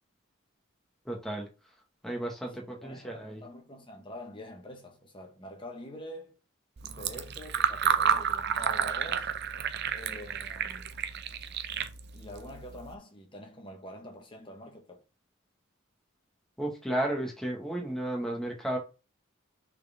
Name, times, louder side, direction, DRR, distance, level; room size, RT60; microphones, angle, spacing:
voice 1, 1.0-1.5 2.0-3.4 16.6-18.8, right 1 dB, ahead, 1.6 m, -33 dB
voice 2, 2.4-6.4 6.8-9.3 9.9-10.9 12.1-15.0, left 1 dB, 25° left, 1.4 m, -46 dB
Fill (with liquid), 6.8-12.9, right 7 dB, 55° right, 0.6 m, -31 dB
6.3 x 4.3 x 3.6 m
head